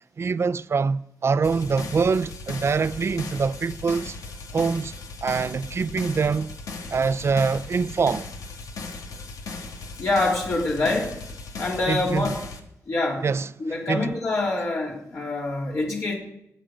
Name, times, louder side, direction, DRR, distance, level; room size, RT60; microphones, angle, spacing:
voice 1, 0.2-4.2 4.5-4.9 5.2-6.5 6.9-8.3 11.9-12.3 13.2-13.5 13.9-14.2, right 5 dB, 50° right, 0.6 m, -24 dB
sound 1, 1.4-12.6, left 3 dB, 85° left, 1.6 m, -37 dB
voice 2, 10.0-11.2 11.6-12.4 12.9-13.3 13.6-16.1, left 2 dB, 55° left, 3.5 m, -25 dB
18.0 x 8.9 x 5.2 m
cardioid pair, 75°, 6 cm